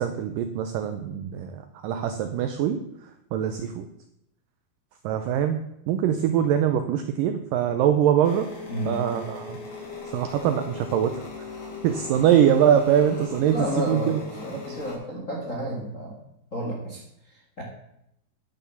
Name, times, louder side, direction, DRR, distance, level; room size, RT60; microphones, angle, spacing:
voice 1, 0.0-2.8 3.3-3.9 5.0-5.6 5.9-8.5 8.9-9.6 10.1-11.2 11.8-13.6 13.9-14.2 14.7-14.8, right 9 dB, 85° right, 8 dB, 1.9 m, -23 dB
sound 1, 8.2-15.0, left 4 dB, 75° left, 5.4 m, -39 dB
voice 2, 8.7-9.1 13.4-16.2 16.5-17.6, equal, 35° left, -1 dB, 1.3 m, -32 dB
10.5 x 7.0 x 7.0 m, 0.81 s
omnidirectional pair, 4.7 m